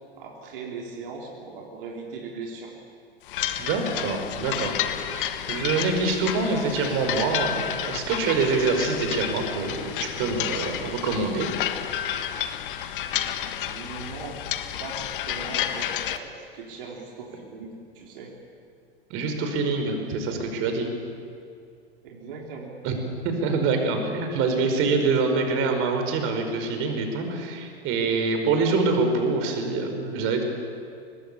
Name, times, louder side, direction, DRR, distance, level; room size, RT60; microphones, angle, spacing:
voice 1, 0.2-2.7 13.6-18.3 22.0-22.7, right 4 dB, 60° right, -1 dB, 3.9 m, -39 dB
sound 1, 3.3-16.2, left 11 dB, 60° left, 1.5 m, -31 dB
voice 2, 3.6-11.5 19.1-20.9 22.8-23.0 23.2-30.4, right 4 dB, 45° right, 5 dB, 5.2 m, -25 dB
23.5 x 20.5 x 8.6 m, 2.4 s
figure-of-eight pair, 95°, 30 cm